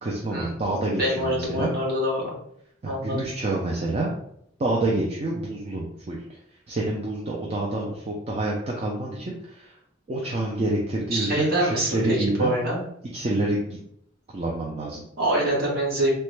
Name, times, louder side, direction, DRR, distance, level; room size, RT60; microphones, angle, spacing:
voice 1, 0.0-1.7 2.8-4.1 4.6-6.2 6.7-9.7 10.1-12.6 13.1-13.8 14.3-15.0, right 2 dB, 30° right, -2 dB, 0.4 m, -27 dB
voice 2, 1.0-2.2 2.8-3.2 11.1-12.8 15.2-16.1, right 1 dB, 50° right, -4 dB, 1.1 m, -25 dB
3.2 x 2.1 x 3.1 m, 0.71 s
head